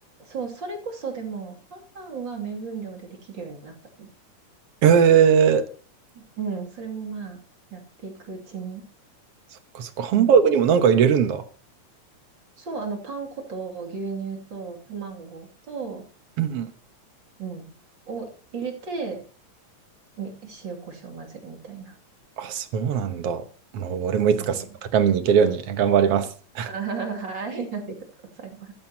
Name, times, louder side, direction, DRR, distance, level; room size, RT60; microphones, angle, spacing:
voice 1, 0.2-4.1 6.1-7.4 7.7-8.8 10.1-10.4 12.6-16.0 17.4-17.7 18.1-19.2 20.2-22.0 24.4-24.7 26.7-28.7, right 5 dB, 40° right, 3.0 m, -34 dB
voice 2, 4.8-5.7 9.8-11.4 16.4-16.7 22.4-23.4 23.7-24.6 24.9-26.7, right 7 dB, 60° right, 1.8 m, -20 dB
14.5 x 13.5 x 2.9 m
omnidirectional pair, 3.4 m